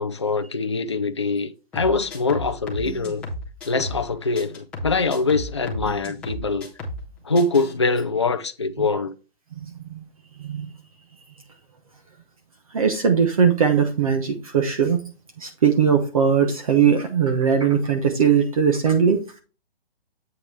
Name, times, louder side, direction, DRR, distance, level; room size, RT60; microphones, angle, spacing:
voice 1, 0.0-3.3 3.7-6.7 7.2-9.1, left 3 dB, 30° left, 0.4 m, -23 dB
sound 1, 1.7-4.1 4.4-7.1 7.4-7.7, left 1 dB, 5° left, 0.8 m, -34 dB
voice 2, 12.7-15.0 15.4-19.2, right 7 dB, 35° right, 1.0 m, -19 dB
8.0 x 5.8 x 3.4 m
hypercardioid pair, 170°, 31 cm